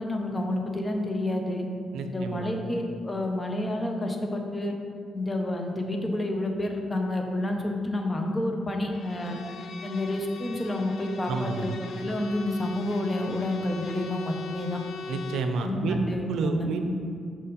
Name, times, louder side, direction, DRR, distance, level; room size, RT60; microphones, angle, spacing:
voice 1, 0.0-1.7 2.0-4.7 5.1-9.4 9.8-11.7 12.0-14.8 15.6-16.9, left 1 dB, 20° left, 3 dB, 0.7 m, -29 dB
voice 2, 1.9-2.5 11.3-11.7 15.1-16.0 16.3-16.8, right 4 dB, 85° right, 6 dB, 0.5 m, -30 dB
Bowed string instrument, 8.9-15.6, left 4 dB, 55° left, 0.3 m, -39 dB
6.2 x 4.2 x 3.9 m, 2.4 s
cardioid pair, 115°, 0 cm